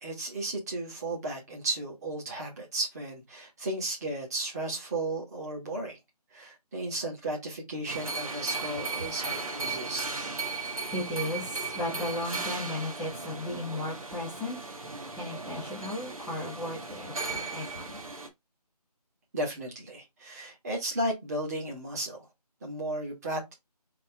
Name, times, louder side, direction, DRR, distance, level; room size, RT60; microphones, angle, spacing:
voice 1, 0.0-6.0 6.3-10.1 19.3-22.3 22.6-23.5, right 2 dB, 25° right, 1.8 m, -34 dB
sound 1, 7.9-18.3, right 3 dB, 55° right, 1.3 m, -36 dB
voice 2, 10.5-18.0, left 1 dB, ahead, 0.7 m, -36 dB
4.2 x 3.2 x 3.5 m
figure-of-eight pair, 160°, 21 cm